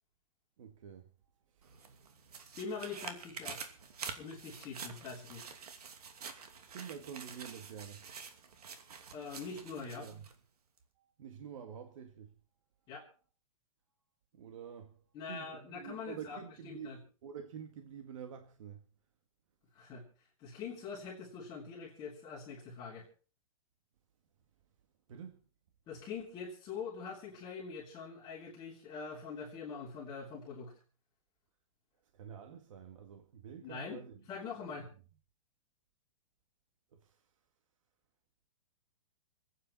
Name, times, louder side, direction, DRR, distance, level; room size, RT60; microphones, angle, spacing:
voice 1, 0.6-1.1 1.6-2.3 6.7-8.0 9.7-10.2 11.2-12.4 14.3-15.0 15.3-16.9 17.2-18.8 25.1-25.4 32.1-34.2 36.9-37.2, right 8 dB, 60° right, 1.9 m, -48 dB
sound 1, 1.6-10.3 10.8-10.9, right 6 dB, 85° right, 2.7 m, -48 dB
voice 2, 2.5-3.7 4.2-5.4 9.1-10.1 12.9-13.1 15.1-16.4 16.6-17.0 19.7-20.0 20.4-23.1 25.9-30.7 33.6-34.9, left 5 dB, 20° left, 3.3 m, -44 dB
27.5 x 9.4 x 4.3 m
hypercardioid pair, 170°, 19 cm